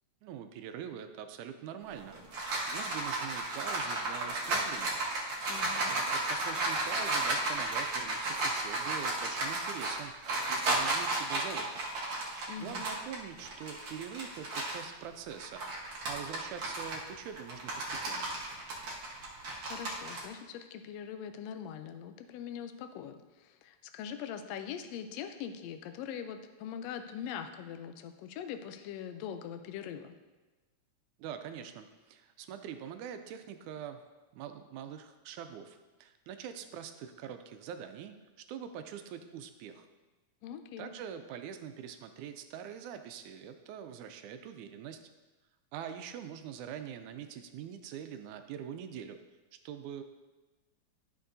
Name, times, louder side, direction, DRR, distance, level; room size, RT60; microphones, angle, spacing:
voice 1, 0.2-2.2 2.7-5.0 5.9-10.1 10.5-11.9 12.6-18.3 31.2-34.0 34.3-38.2 38.5-39.9 40.8-45.0 45.7-49.2 49.7-50.0, right 8 dB, 80° right, 8 dB, 2.0 m, -44 dB
sound 1, 1.9-14.9 15.3-20.2, right 2 dB, 55° right, 1.5 m, -34 dB
voice 2, 5.5-5.9 12.5-12.8 19.6-30.1 40.4-40.9, left 8 dB, 80° left, 8 dB, 1.5 m, -42 dB
11.0 x 6.2 x 2.6 m, 1.2 s
omnidirectional pair, 3.5 m